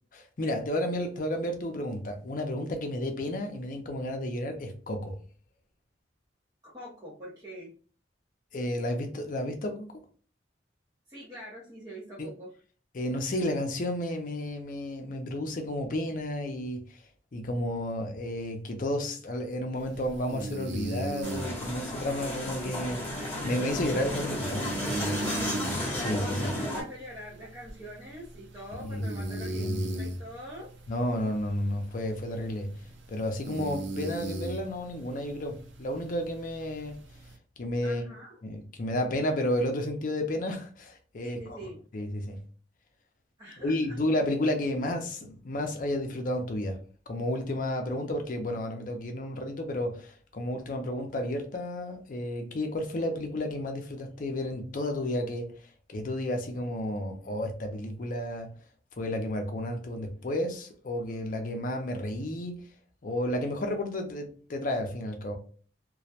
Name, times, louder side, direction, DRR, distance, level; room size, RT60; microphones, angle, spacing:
voice 1, 0.1-5.2 8.5-9.9 12.2-12.3 12.9-17.0 17.3-25.2 26.0-26.5 28.8-29.8 30.9-32.7 33.1-37.0 37.6-38.0 38.4-41.6 41.9-42.4 43.6-46.8 47.1-55.5 55.9-58.5 59.0-62.6 63.0-65.4, left 1 dB, 45° left, 0.5 m, -32 dB
voice 2, 6.6-7.7 11.1-12.5 25.2-25.7 26.3-30.7 37.8-38.4 41.2-41.8 43.4-44.0, equal, 20° right, 0.6 m, -44 dB
sound 1, 19.8-37.3, right 2 dB, 90° right, 0.5 m, -39 dB
sound 2, 21.2-26.8, left 1 dB, 10° left, 0.8 m, -33 dB
2.2 x 2.1 x 2.7 m
head